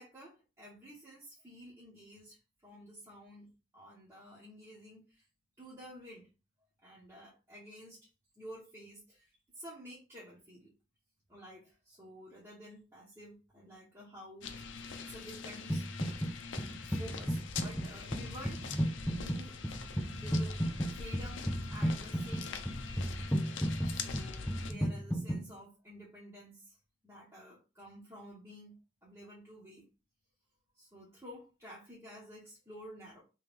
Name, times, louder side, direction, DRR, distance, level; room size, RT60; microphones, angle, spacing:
voice 1, 0.0-2.4 2.6-3.5 3.7-5.2 5.6-6.3 6.8-8.1 8.4-10.7 11.3-14.7 15.1-15.9 16.8-19.5 20.1-21.4 21.7-22.7 23.4-23.5 23.8-26.8 27.0-28.7 29.0-29.8 30.7-33.2, equal, 15° right, -8 dB, 1.0 m, -51 dB
sound 1, 14.4-24.7, left 5 dB, 80° left, 0.6 m, -43 dB
sound 2, 15.7-16.3 16.6-25.4, equal, 5° left, 0.4 m, -34 dB
3.1 x 3.1 x 3.4 m, 0.31 s
head